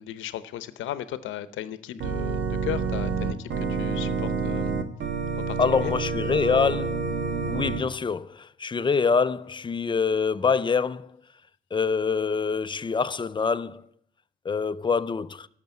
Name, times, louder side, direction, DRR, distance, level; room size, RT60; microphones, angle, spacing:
voice 1, 0.0-4.7 5.5-5.9, left 12 dB, 80° left, 0.8 m, -36 dB
Organ, 2.0-7.8, right 4 dB, 65° right, 1.5 m, -28 dB
voice 2, 5.6-7.0 7.5-11.1 11.7-13.8 14.4-15.5, left 5 dB, 25° left, 0.5 m, -25 dB
12.0 x 6.7 x 9.3 m
cardioid pair, 90°, 20 cm